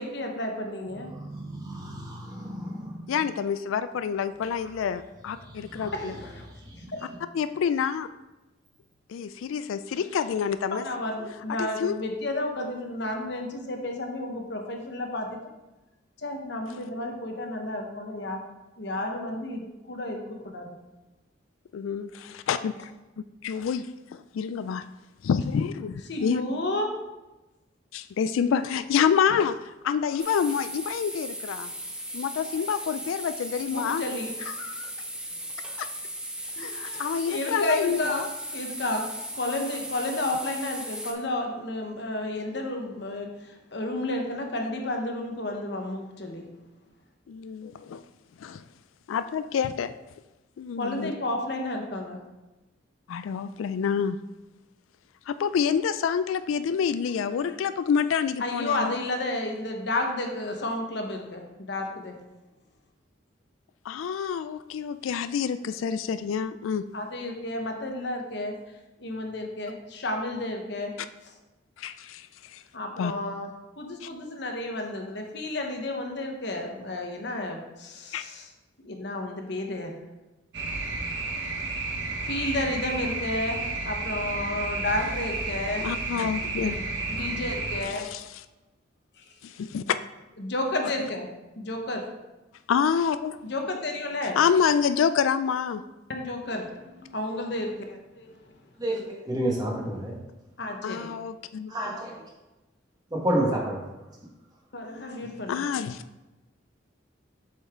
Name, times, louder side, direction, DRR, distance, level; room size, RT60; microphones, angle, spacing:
voice 1, 0.0-1.1 4.1-4.3 4.6-4.7 5.9-6.5 6.9-7.0 10.7-15.4 16.2-18.4 18.8-20.8 22.2-22.4 26.1-26.9 32.4-32.5 33.7-34.3 36.6-38.3 38.5-39.1 39.3-46.5 50.8-52.2 57.5-57.6 58.4-62.2 66.9-70.9 71.2-71.4 72.7-73.5 73.8-78.5 78.8-79.9 82.2-83.6 83.8-85.8 86.5-88.1 89.2-89.5 90.4-91.3 91.5-92.0 93.4-94.4 96.1-98.6 100.6-101.1 104.7-105.6, left 1 dB, 60° left, 3 dB, 1.0 m, -32 dB
voice 2, 1.1-2.9 5.7-5.9 6.7-6.8 98.8-100.2 101.7-102.2 103.1-103.8, right 1 dB, 20° right, -2 dB, 1.4 m, -30 dB
voice 3, 3.1-6.1 7.3-8.1 9.1-10.8 11.6-12.0 21.7-22.8 23.4-23.9 24.1-24.8 25.2-26.4 27.9-29.6 29.8-31.7 32.1-34.0 34.6-34.9 35.8-35.9 36.6-38.2 47.3-48.0 48.4-48.6 49.1-49.9 50.6-51.1 53.1-54.2 55.3-59.0 63.9-66.8 71.8-72.6 73.0-73.1 74.0-74.1 78.1-78.2 85.8-86.8 87.9-88.2 89.4-90.0 92.7-93.4 94.4-95.8 100.8-101.7 105.5-106.0, left 7 dB, 90° left, 12 dB, 0.3 m, -27 dB
sound 1, 30.2-41.1, right 1 dB, 5° right, 0.6 m, -37 dB
capemay ferrycaralarm, 80.5-87.8, right 3 dB, 60° right, 0.9 m, -32 dB
7.4 x 5.5 x 3.6 m, 1.0 s
head